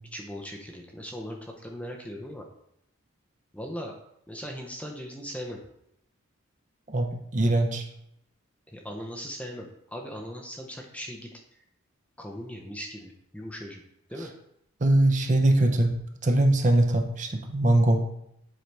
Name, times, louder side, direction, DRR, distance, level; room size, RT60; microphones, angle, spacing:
voice 1, 0.1-2.5 3.5-4.0 4.3-5.6 8.7-11.4 12.2-13.8 14.1-14.3, equal, 5° left, 1 dB, 0.6 m, -39 dB
voice 2, 6.9-7.8 14.8-16.0 16.2-18.0, right 1 dB, 35° right, 4 dB, 0.7 m, -22 dB
7.8 x 4.5 x 3.3 m, 0.77 s
head